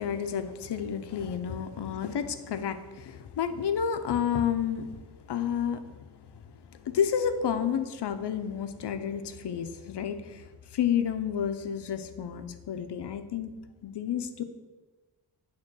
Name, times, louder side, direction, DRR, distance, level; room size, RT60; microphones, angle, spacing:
voice 1, 0.0-5.0 5.3-5.8 6.8-13.5 13.8-14.4, left 8 dB, 70° left, 10 dB, 0.7 m, -30 dB
8.9 x 3.6 x 6.1 m, 1.3 s
wide cardioid pair, 165°, 43 cm